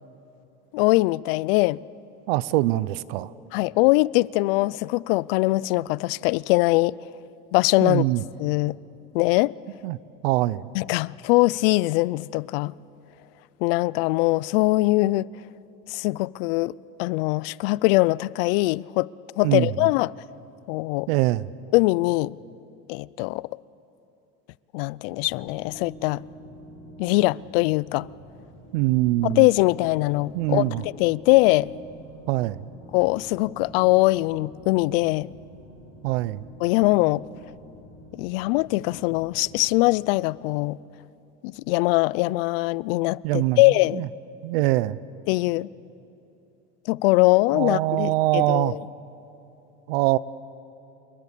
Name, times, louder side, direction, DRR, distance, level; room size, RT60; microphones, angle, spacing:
voice 1, 0.7-1.8 3.5-6.9 7.5-8.0 8.4-8.8 9.1-9.5 10.7-12.7 13.6-15.3 15.9-19.1 19.4-20.1 20.7-21.1 21.7-22.4 22.9-23.5 24.7-26.2 27.0-28.1 29.2-31.7 32.9-35.3 36.6-37.2 38.1-40.8 41.4-44.0 45.3-45.7 46.9-48.8, left 21 dB, 75° left, 0.5 m, -22 dB
voice 2, 2.3-3.3 7.8-8.2 9.8-10.6 19.4-19.9 21.1-21.5 28.7-29.5 30.3-30.9 32.3-32.7 36.0-36.4 43.2-44.1 44.4-45.0 47.5-48.7 49.9-50.2, right 17 dB, 85° right, 0.8 m, -23 dB
sound 1, 25.2-39.9, right 1 dB, 10° left, 7.0 m, -46 dB
27.5 x 22.5 x 8.4 m
cardioid pair, 175°, 29 cm